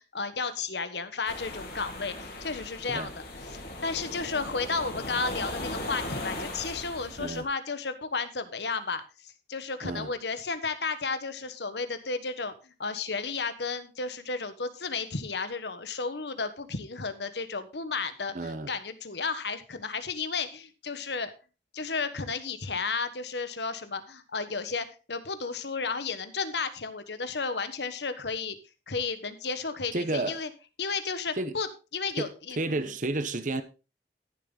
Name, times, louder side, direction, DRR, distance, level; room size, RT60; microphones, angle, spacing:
voice 1, 0.0-3.2 3.5-21.3 21.7-28.6 28.9-30.5 30.8-31.7 31.9-32.8, left 4 dB, 75° left, 1.4 m, -33 dB
sound 1, 1.3-7.4, left 1 dB, 55° left, 3.7 m, -38 dB
voice 2, 7.1-7.5 9.8-10.1 18.3-18.7 29.9-30.4 31.4-31.6 32.2-32.3 32.6-33.6, right 2 dB, 45° right, 1.0 m, -31 dB
14.0 x 7.1 x 4.0 m
head